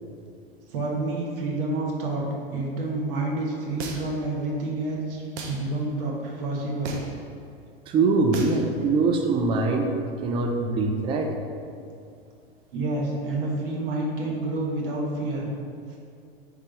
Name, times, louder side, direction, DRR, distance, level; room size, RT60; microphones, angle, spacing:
voice 1, 0.7-2.2 2.5-7.0 12.7-15.5 15.9-16.0, right 2 dB, 60° right, -2 dB, 1.1 m, -29 dB
sound 1, 3.8-4.2 5.4-5.6 6.8-7.2 8.3-8.6, right 4 dB, 40° right, 0.7 m, -34 dB
voice 2, 7.9-9.9 10.2-11.3, right 3 dB, 20° right, 3 dB, 0.3 m, -23 dB
3.4 x 3.3 x 4.5 m, 2.4 s
hypercardioid pair, 100°, 31 cm